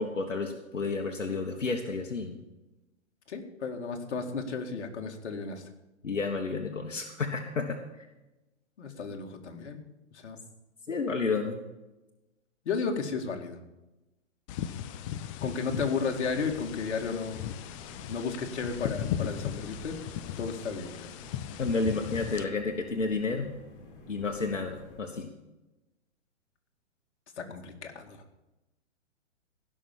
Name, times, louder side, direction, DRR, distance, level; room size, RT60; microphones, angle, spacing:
voice 1, 0.0-2.4 6.0-7.8 10.9-11.6 21.6-23.5 24.1-25.3, left 4 dB, 85° left, 3 dB, 1.5 m, -31 dB
voice 2, 3.3-5.6 8.8-9.8 10.1-10.4 12.7-13.6 15.4-17.4 18.1-20.0 20.4-21.1 27.4-28.2, left 5 dB, 65° left, 4 dB, 2.2 m, -33 dB
sound 1, 14.5-22.4, left 10 dB, 25° left, 0.6 m, -37 dB
sound 2, 16.0-25.0, left 3 dB, 45° left, 4.0 m, -49 dB
16.0 x 6.4 x 7.3 m, 1.0 s
figure-of-eight pair, 120°, 37 cm